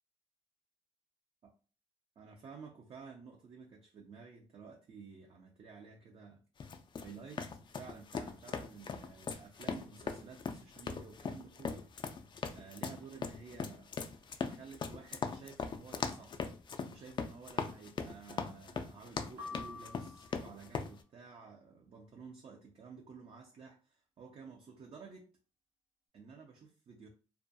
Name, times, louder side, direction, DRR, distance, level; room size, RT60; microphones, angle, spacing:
voice 1, 2.2-6.4 7.0-11.9 12.5-14.0 14.5-16.4 16.9-25.3 26.1-27.1, right 5 dB, 45° right, 0 dB, 0.5 m, -52 dB
sound 1, 6.6-20.9, left 5 dB, 35° left, 0.3 m, -40 dB
sound 2, 19.4-20.7, left 4 dB, 80° right, 0.7 m, -47 dB
2.3 x 2.2 x 2.6 m, 0.37 s
supercardioid pair, 65°, 13 cm